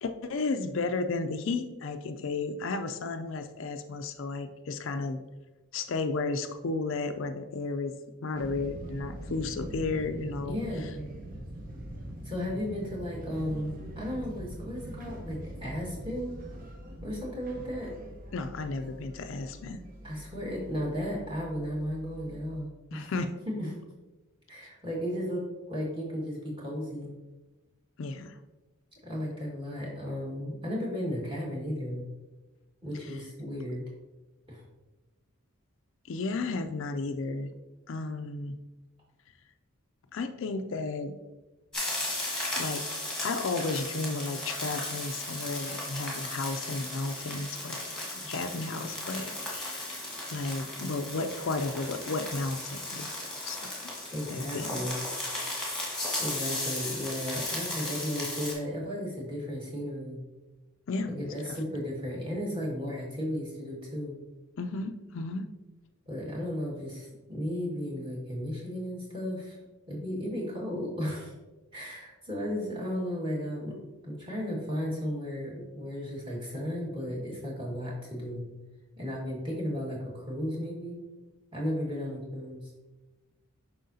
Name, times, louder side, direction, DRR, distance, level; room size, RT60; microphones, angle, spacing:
voice 1, 0.0-5.2 5.7-7.9 8.2-10.9 18.3-19.8 22.9-23.3 28.0-28.4 33.0-33.2 36.1-37.5 37.9-38.6 40.1-41.2 42.5-42.8 43.2-50.0 50.3-53.9 54.3-54.8 60.9-61.6 64.6-65.5, left 3 dB, 60° left, 8 dB, 0.4 m, -33 dB
sound 1, 8.3-22.6, right 1 dB, 40° right, 0.8 m, -43 dB
voice 2, 10.4-11.0 12.2-16.4 17.0-18.0 20.0-23.1 23.5-23.7 24.5-27.1 29.0-32.1 32.8-33.8 34.5-34.6 54.1-55.0 56.2-60.2 61.2-64.2 66.1-69.6 69.9-71.3 71.7-73.8 74.0-78.5 79.0-81.0 81.5-82.7, equal, 20° right, -4 dB, 1.7 m, -34 dB
sound 2, 41.7-58.5, left 1 dB, 5° left, 1.6 m, -36 dB
7.6 x 5.6 x 2.7 m, 1.1 s
head